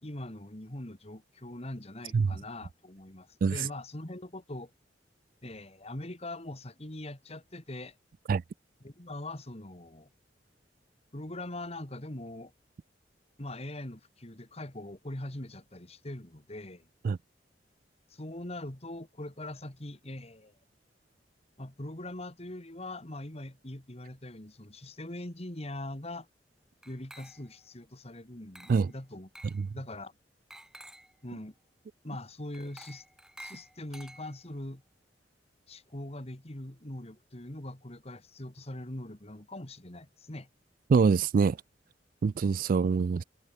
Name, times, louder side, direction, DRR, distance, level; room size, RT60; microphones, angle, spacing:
voice 1, 0.0-4.7 5.4-7.9 8.8-10.1 11.1-12.5 13.4-16.9 18.1-20.5 21.6-26.3 26.9-29.3 29.7-30.1 31.2-31.5 32.0-33.0 33.4-34.8 35.7-40.5, left 1 dB, 35° left, 2.4 m, -42 dB
Glass, 26.8-27.7 28.5-28.9 29.3-29.6 30.5-31.2 32.5-34.6, right 1 dB, 5° right, 2.9 m, -51 dB
voice 2, 40.9-41.6 42.2-43.2, right 5 dB, 50° right, 0.3 m, -24 dB
head